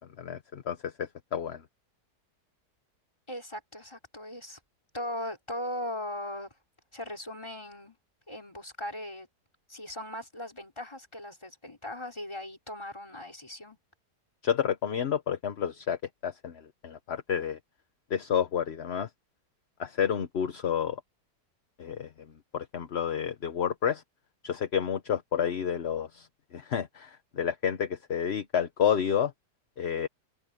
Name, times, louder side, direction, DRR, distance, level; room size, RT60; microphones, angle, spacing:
voice 1, 0.2-1.6 14.4-17.6 18.1-19.1 19.8-21.0 21.8-22.1 22.5-24.0 24.4-29.3 29.8-30.1, left 8 dB, 45° left, 1.0 m, -30 dB
voice 2, 3.3-4.6 4.9-6.5 6.9-7.9 8.3-9.3 9.7-13.8, left 1 dB, 15° left, 3.5 m, -38 dB
omnidirectional pair, 1.8 m